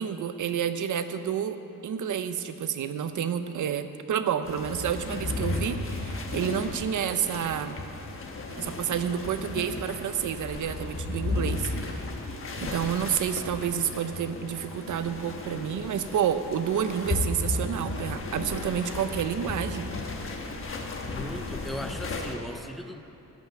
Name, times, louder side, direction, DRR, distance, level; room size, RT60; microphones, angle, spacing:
voice 1, 0.0-1.6 1.8-7.8 8.5-12.1 12.6-19.9, right 8 dB, 60° right, 10 dB, 0.6 m, -29 dB
sound 1, 4.4-22.3, left 3 dB, 40° left, 1.1 m, -34 dB
voice 2, 21.0-23.0, equal, ahead, 7 dB, 0.3 m, -38 dB
13.5 x 5.7 x 8.9 m, 2.8 s
wide cardioid pair, 175°, 35 cm